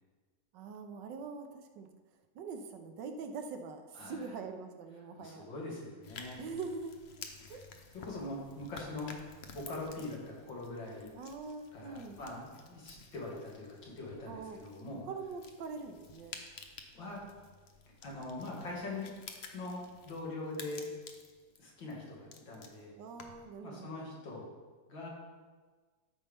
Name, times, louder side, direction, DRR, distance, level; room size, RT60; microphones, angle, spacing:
voice 1, 0.5-1.9 2.3-5.5 6.4-6.9 7.5-7.6 11.1-12.2 14.3-16.3 23.0-24.0, right 4 dB, 75° right, 6 dB, 1.4 m, -43 dB
voice 2, 3.9-4.3 5.1-6.4 7.4-7.6 7.9-9.1 9.5-11.1 11.7-15.1 16.9-17.2 18.0-19.1 19.5-20.9 21.6-22.9 23.6-24.5 24.9-25.1, left 2 dB, 85° left, -4 dB, 2.7 m, -42 dB
sound 1, 6.0-23.5, left 5 dB, 65° left, 0.6 m, -53 dB
13.0 x 5.4 x 3.5 m, 1.4 s
omnidirectional pair, 2.0 m